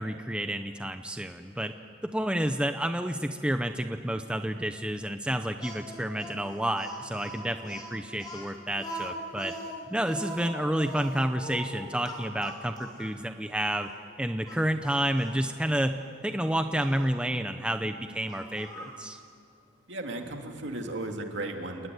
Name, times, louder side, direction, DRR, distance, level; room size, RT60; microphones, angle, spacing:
voice 1, 0.0-1.7 2.0-9.5 9.9-13.9 14.2-19.2, right 1 dB, 5° right, 7 dB, 0.7 m, -30 dB
Speech, 5.6-13.2 13.8-13.9 14.4-15.4 16.8-17.1 18.3-19.0, equal, 20° left, 3.6 m, -41 dB
voice 2, 19.9-21.9, right 2 dB, 65° right, 3 dB, 2.8 m, -35 dB
29.0 x 19.0 x 9.5 m, 2.3 s
head